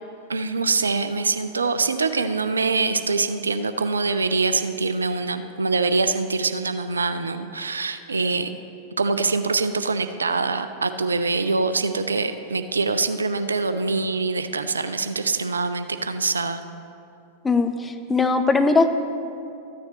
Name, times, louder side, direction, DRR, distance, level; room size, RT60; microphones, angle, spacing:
voice 1, 0.3-8.6 9.0-16.6, right 4 dB, 75° right, 10 dB, 0.4 m, -24 dB
voice 2, 17.4-18.9, left 3 dB, 15° left, 7 dB, 0.5 m, -20 dB
13.5 x 9.3 x 3.1 m, 2.6 s
figure-of-eight pair, 90°, 0 cm